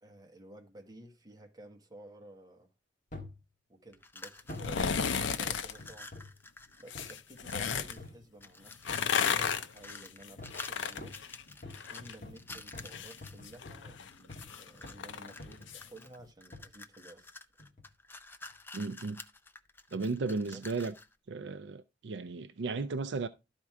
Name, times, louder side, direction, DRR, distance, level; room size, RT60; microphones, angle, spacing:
voice 1, 0.0-2.7 3.7-6.1 6.8-11.3 11.9-17.3 20.5-20.6, right 1 dB, 20° right, 1.3 m, -53 dB
sound 1, 3.1-3.4 4.5-4.8 5.4-6.4 6.9-7.2 8.0-8.3 8.9-9.7 10.4-10.7 11.0-14.5 14.8-15.1 15.4-15.8 16.5-16.7 17.6-17.9 18.5-18.6, left 2 dB, 45° left, 1.5 m, -48 dB
sound 2, 3.9-5.2 5.5-8.1 8.4-13.6 14.1-15.0 15.3-21.1, left 3 dB, 10° left, 0.4 m, -50 dB
sound 3, 4.5-5.7 6.9-7.9 8.7-12.2 12.5-15.9 16.2-16.3, left 6 dB, 80° left, 0.6 m, -34 dB
voice 2, 18.7-19.2 19.9-20.9 21.3-23.3, right 3 dB, 65° right, 0.4 m, -35 dB
12.0 x 4.4 x 3.5 m
head